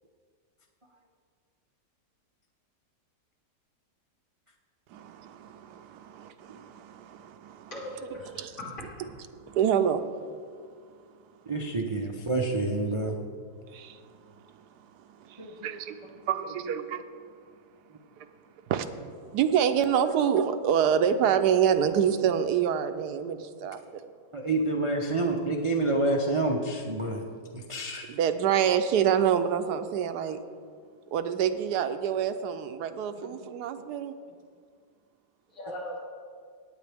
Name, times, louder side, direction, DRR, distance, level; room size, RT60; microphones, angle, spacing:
voice 1, 4.9-7.7 8.4-8.5 9.4-10.0 13.7-14.0 15.2-16.0 16.2-17.0 18.2-18.3 18.7-18.9 19.2-23.8 28.1-30.4 31.1-34.1, right 8 dB, 75° right, 9 dB, 1.1 m, -27 dB
voice 2, 7.7-9.1 35.5-36.1, left 1 dB, 80° left, -6 dB, 3.6 m, -39 dB
voice 3, 11.5-13.2 15.4-15.5 16.4-16.8 19.8-19.9 20.1-20.2 24.3-27.2 27.5-28.1 33.1-33.3, right 2 dB, 45° right, 0 dB, 0.4 m, -28 dB
17.5 x 8.9 x 3.4 m, 2.1 s
omnidirectional pair, 1.8 m